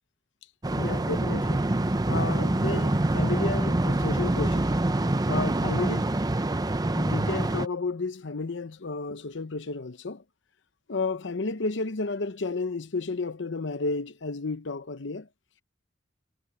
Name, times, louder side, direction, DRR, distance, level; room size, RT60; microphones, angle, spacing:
sound 1, 0.6-7.7, right 1 dB, 20° right, 0.6 m, -25 dB
voice 1, 0.8-1.6 2.1-4.7 5.3-6.1 6.9-10.2 10.9-15.3, left 3 dB, 75° left, 0.8 m, -32 dB
head